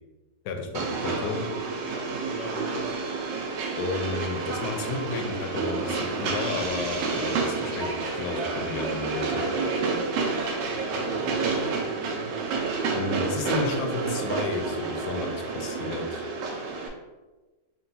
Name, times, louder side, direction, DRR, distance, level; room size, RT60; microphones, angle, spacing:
voice 1, 0.4-1.4 3.8-9.4 12.9-16.2, left 4 dB, 75° left, 4 dB, 1.1 m, -32 dB
Train, 0.7-16.9, right 4 dB, 85° right, 1.3 m, -29 dB
voice 2, 1.9-2.9 10.6-12.3, right 1 dB, 45° right, -7 dB, 0.5 m, -40 dB
3.8 x 2.2 x 3.9 m, 1.2 s
omnidirectional pair, 1.9 m